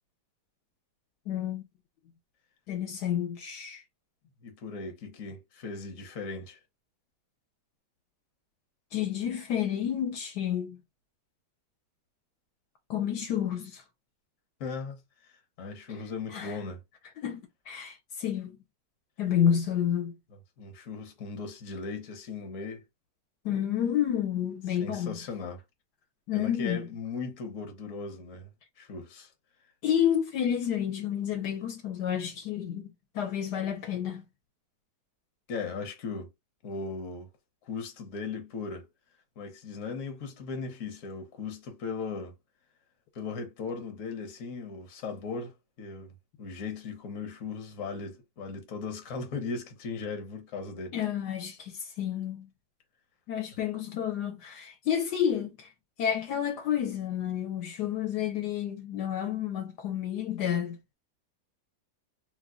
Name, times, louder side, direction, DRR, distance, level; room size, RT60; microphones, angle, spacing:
voice 1, 1.3-1.6 2.7-3.8 8.9-10.8 12.9-13.8 16.3-16.5 17.2-18.6 19.2-20.2 23.4-25.2 26.3-26.8 29.8-32.8 33.1-34.2 50.9-52.5 53.3-55.7 56.0-60.8, left 9 dB, 75° left, 1.3 m, -30 dB
voice 2, 4.4-6.6 14.6-15.0 15.6-16.8 20.6-22.8 24.8-25.6 26.3-28.5 28.8-29.3 35.5-36.3 36.6-37.3 37.6-38.9 39.4-42.3 43.1-51.0, left 4 dB, 55° left, 1.2 m, -38 dB
2.9 x 2.2 x 3.6 m
omnidirectional pair, 1.9 m